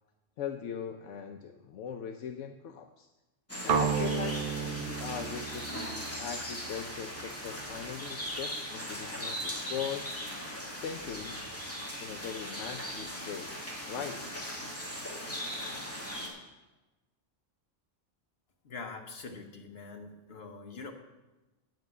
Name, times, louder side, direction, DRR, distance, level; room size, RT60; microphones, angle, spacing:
voice 1, 0.4-3.1 3.6-10.1 10.7-11.4 12.0-13.5 13.9-14.2, left 8 dB, 75° left, 6 dB, 0.9 m, -40 dB
sound 1, 3.5-16.3, equal, 10° left, 2.4 m, -39 dB
sound 2, 3.7-7.6, right 7 dB, 60° right, 0.7 m, -33 dB
voice 2, 18.6-20.9, left 4 dB, 55° left, 2 dB, 1.4 m, -44 dB
9.2 x 6.0 x 8.2 m, 1.1 s
omnidirectional pair, 1.3 m